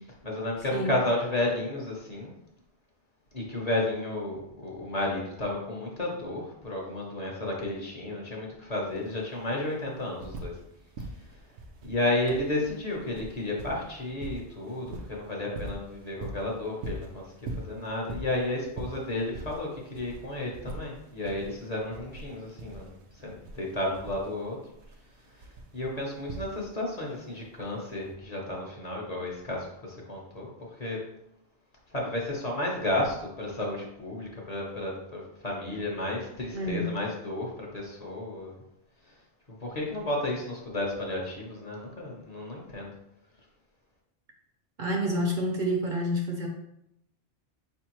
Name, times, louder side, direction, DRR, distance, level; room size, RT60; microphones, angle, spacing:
voice 1, 0.2-2.3 3.3-10.6 11.0-11.1 11.8-24.6 25.4-25.5 25.7-30.5 30.8-31.0 31.9-38.6 39.6-42.9, left 1 dB, 40° left, -2 dB, 0.9 m, -32 dB
sound 1, 8.9-9.0 9.2-10.7 10.9-26.9 28.0-28.1, right 2 dB, 75° right, 0.9 m, -42 dB
voice 2, 36.5-37.0 44.8-46.5, equal, 50° right, 1 dB, 0.8 m, -28 dB
4.7 x 3.5 x 3.0 m, 0.80 s
omnidirectional pair, 1.1 m